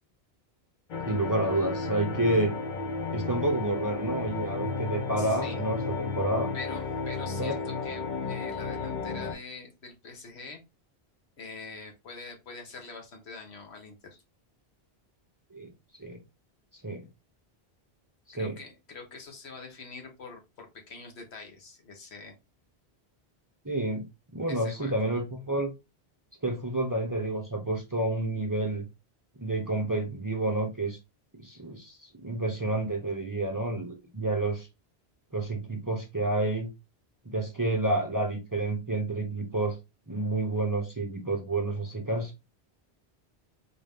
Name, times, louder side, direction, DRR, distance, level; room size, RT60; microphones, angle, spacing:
sound 1, 0.9-9.3, left 4 dB, 50° left, 0.9 m, -33 dB
voice 1, 1.1-2.5 3.1-6.5 7.4-7.5 15.5-15.7 16.0-16.2 16.8-17.1 18.4-18.6 23.6-24.1 24.3-25.7 26.4-28.9 29.4-31.0 31.4-34.7 35.3-36.7 37.2-39.8 40.1-42.3, right 2 dB, 25° right, 0.6 m, -29 dB
voice 2, 5.2-5.6 6.5-10.6 11.4-14.2 18.3-22.3 24.5-25.0, left 4 dB, 80° left, 1.3 m, -44 dB
4.1 x 2.6 x 3.5 m
omnidirectional pair, 1.1 m